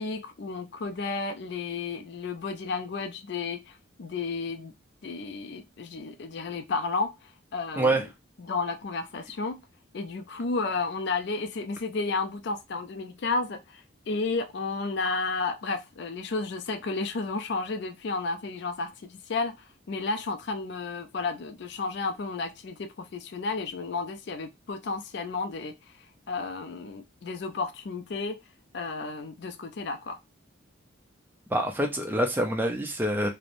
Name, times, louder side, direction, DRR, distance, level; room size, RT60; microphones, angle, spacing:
voice 1, 0.0-4.7 5.0-8.0 8.4-9.6 9.9-19.6 19.9-25.7 26.3-28.4 28.7-30.2, left 3 dB, 55° left, 0.4 m, -32 dB
voice 2, 31.5-33.3, right 1 dB, 10° right, 0.4 m, -26 dB
3.1 x 2.0 x 2.5 m
head